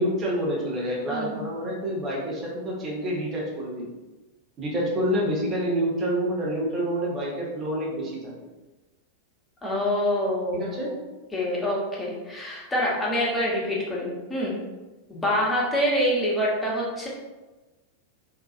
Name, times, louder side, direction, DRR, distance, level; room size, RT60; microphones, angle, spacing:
voice 1, 0.0-3.9 4.6-8.5 10.5-11.0, equal, 25° right, -4 dB, 0.8 m, -28 dB
voice 2, 1.1-1.6 9.6-10.6 11.3-14.6 15.1-17.1, equal, 15° left, -4 dB, 0.8 m, -26 dB
2.6 x 2.3 x 2.5 m, 1.1 s
figure-of-eight pair, 90°, 0 cm